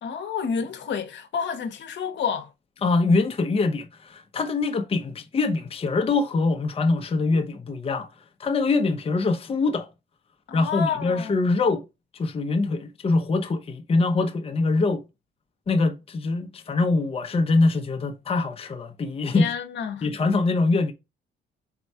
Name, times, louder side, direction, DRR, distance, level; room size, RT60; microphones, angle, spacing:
voice 1, 0.0-2.5 10.5-11.4 19.3-20.1, left 7 dB, 65° left, 0.9 m, -29 dB
voice 2, 2.8-8.1 8.4-9.9 10.5-11.8 12.2-15.0 15.7-19.5 20.0-20.9, left 3 dB, 30° left, 0.6 m, -23 dB
4.4 x 2.3 x 4.1 m
cardioid pair, 90°, 20 cm